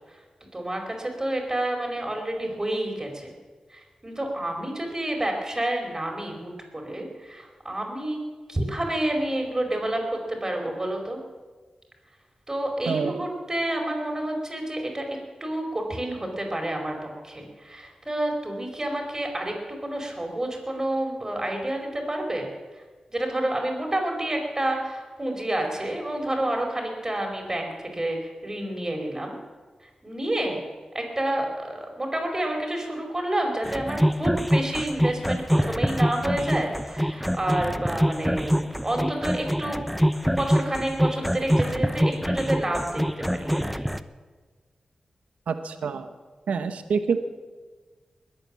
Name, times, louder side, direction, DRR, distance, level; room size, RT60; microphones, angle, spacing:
voice 1, 0.5-3.3 3.7-8.2 8.5-10.0 10.3-11.2 12.5-22.5 23.1-29.4 30.0-30.6 30.9-39.8 40.2-43.9, right 1 dB, 25° right, 2 dB, 5.0 m, -29 dB
voice 2, 12.9-13.3 45.5-46.1 46.5-47.3, right 5 dB, 90° right, 9 dB, 1.0 m, -27 dB
sound 1, 33.7-44.0, equal, ahead, 0.8 m, -25 dB
21.0 x 9.0 x 7.6 m, 1.4 s
cardioid pair, 45°, 2 cm